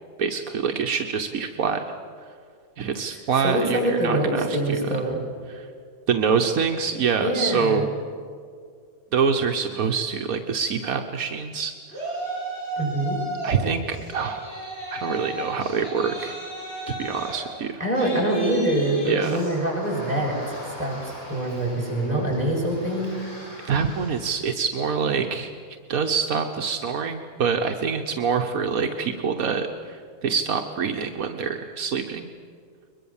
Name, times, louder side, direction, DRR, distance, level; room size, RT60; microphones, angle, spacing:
voice 1, 0.2-1.9 2.8-5.0 5.5-5.7 6.1-7.9 9.1-12.1 13.4-14.5 14.9-16.4 17.0-17.8 19.1-19.4 23.7-25.5 25.9-32.3, right 6 dB, 80° right, 5 dB, 1.5 m, -25 dB
voice 2, 3.1-5.2 7.2-7.8 12.8-13.2 17.8-23.1, right 1 dB, 30° right, -3 dB, 6.9 m, -25 dB
Yell, 11.9-13.6 13.9-24.4, right 2 dB, 45° left, 8.1 m, -36 dB
22.5 x 22.0 x 7.3 m, 2.2 s
omnidirectional pair, 1.5 m